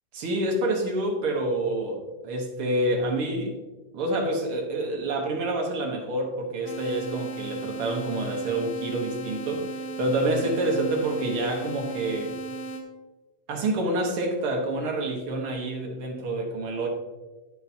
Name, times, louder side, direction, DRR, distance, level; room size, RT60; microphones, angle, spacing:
voice 1, 0.1-3.6 3.9-9.7 10.0-12.4 13.5-16.9, right 1 dB, 55° right, 1 dB, 1.8 m, -27 dB
sound 1, 6.7-12.8, right 3 dB, 65° left, 2.0 m, -36 dB
13.0 x 4.8 x 2.9 m, 1.2 s
omnidirectional pair, 3.6 m